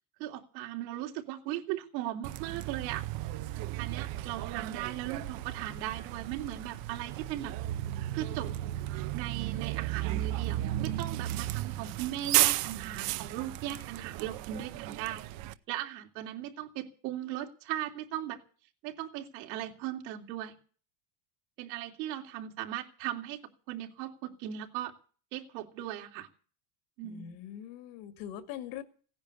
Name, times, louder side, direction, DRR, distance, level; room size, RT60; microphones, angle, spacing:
voice 1, 0.2-3.1 3.8-7.5 8.1-8.5 9.1-15.3 15.7-18.4 18.8-20.5 21.6-23.4 23.7-24.9 25.3-26.3 27.0-27.4, right 12 dB, 90° right, 3 dB, 3.2 m, -38 dB
Bus, 2.2-15.5, right 15 dB, 45° right, 0.8 m, -34 dB
voice 2, 27.0-28.8, left 11 dB, 60° left, 9 dB, 2.3 m, -42 dB
17.0 x 10.5 x 8.3 m, 0.42 s
cardioid pair, 170°, 50 cm